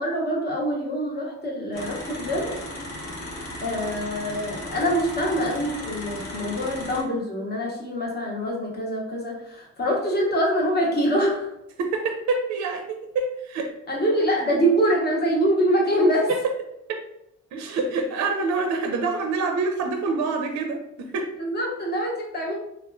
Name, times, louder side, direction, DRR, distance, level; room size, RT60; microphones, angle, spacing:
voice 1, 0.0-2.6 3.6-11.5 13.9-16.3 21.4-22.5, equal, 35° left, -2 dB, 0.9 m, -24 dB
sound 1, 1.7-7.0, left 1 dB, 60° left, 1.0 m, -36 dB
voice 2, 11.8-13.7 16.3-16.4 17.5-21.3, right 3 dB, 65° right, 4 dB, 0.5 m, -26 dB
3.0 x 2.4 x 2.2 m, 0.82 s
cardioid pair, 90°, 30 cm